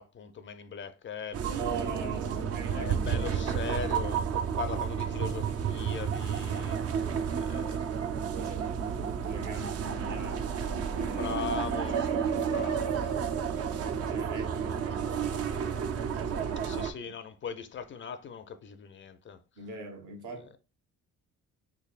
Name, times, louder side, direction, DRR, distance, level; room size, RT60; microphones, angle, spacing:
voice 1, 0.0-1.4 2.7-7.0 7.3-8.0 11.1-12.1 12.5-13.1 14.6-14.7 16.6-19.4, left 6 dB, 40° left, 0.5 m, -39 dB
sound 1, 1.3-16.9, right 7 dB, 55° right, 0.5 m, -31 dB
voice 2, 1.5-3.4 7.0-7.3 8.3-11.4 11.9-12.6 14.1-16.9 19.6-20.5, right 3 dB, 75° right, 1.1 m, -43 dB
3.3 x 3.3 x 2.4 m
cardioid pair, 90°, 30 cm